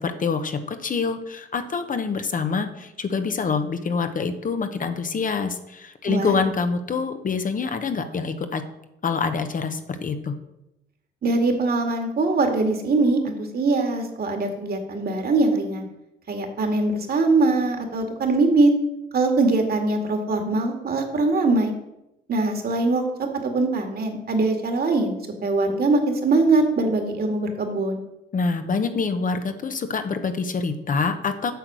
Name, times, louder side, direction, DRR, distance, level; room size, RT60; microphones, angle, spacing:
voice 1, 0.0-8.6 9.0-10.4 28.3-31.5, left 5 dB, 40° left, 8 dB, 1.1 m, -26 dB
voice 2, 11.2-15.9 16.3-18.7 19.1-21.7 22.3-28.0, right 3 dB, 50° right, 4 dB, 2.2 m, -22 dB
8.1 x 6.6 x 6.2 m, 0.87 s
cardioid pair, 90°, 20 cm